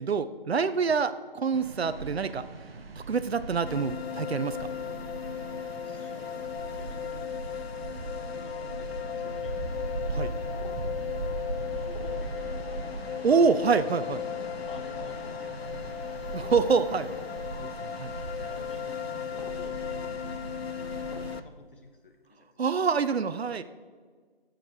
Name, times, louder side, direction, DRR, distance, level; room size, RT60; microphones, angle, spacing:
voice 1, 0.0-2.5 3.0-4.7 10.1-10.3 13.2-14.2 16.3-17.1 17.6-18.1 22.6-23.6, right 5 dB, 85° right, 12 dB, 0.7 m, -26 dB
sound 1, 1.5-21.4, right 3 dB, 70° right, 1.1 m, -39 dB
sound 2, 3.7-21.4, left 9 dB, 80° left, 0.5 m, -36 dB
voice 2, 5.8-7.4 8.4-10.2 11.6-12.8 14.7-16.4 18.3-20.2 20.9-22.5, left 3 dB, 60° left, 4 dB, 1.7 m, -51 dB
sound 3, 8.7-9.1 10.5-10.8 11.9-12.3 13.2-13.6 14.4-14.6 15.2-15.4 16.5-16.7 17.1-17.4 18.6-18.7 19.3-19.6 21.1-21.4, left 3 dB, 40° left, 0.7 m, -49 dB
14.0 x 6.5 x 4.6 m, 1.6 s
figure-of-eight pair, 165°, 31 cm